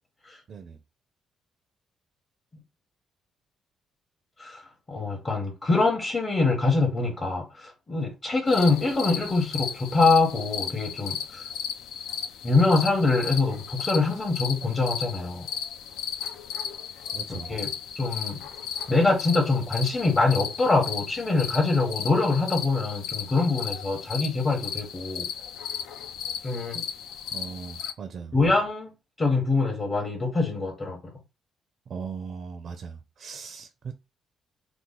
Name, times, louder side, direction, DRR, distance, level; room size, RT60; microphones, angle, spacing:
voice 1, 4.9-11.4 12.4-15.5 17.3-18.4 18.9-25.3 26.4-26.8 28.3-28.9 29.2-31.0, left 3 dB, 30° left, 1.0 m, -24 dB
sound 1, 8.5-27.9, left 8 dB, 85° left, 0.4 m, -35 dB
voice 2, 17.1-17.5 27.3-28.4 31.9-33.9, right 6 dB, 55° right, 0.4 m, -38 dB
3.0 x 2.0 x 3.8 m
cardioid pair, 90°, 0 cm